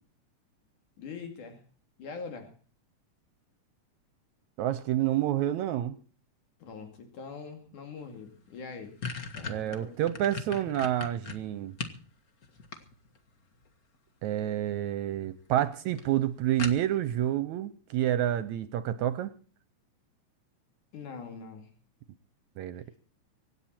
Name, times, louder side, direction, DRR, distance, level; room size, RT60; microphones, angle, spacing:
voice 1, 1.0-1.6 2.0-2.5 6.6-9.0 9.3-10.0 20.9-21.7, left 5 dB, 85° left, 5 dB, 4.1 m, -43 dB
voice 2, 4.6-6.0 9.4-11.8 14.2-19.3 22.6-22.8, right 12 dB, 75° right, 14 dB, 2.1 m, -29 dB
sound 1, 8.1-8.2 8.5-12.0 12.4-13.3 14.4-14.8 15.1-15.2 15.6-15.7 16.0-16.1 16.6-17.1, left 4 dB, 35° left, 1.7 m, -38 dB
25.0 x 9.7 x 4.4 m, 0.40 s
omnidirectional pair, 3.5 m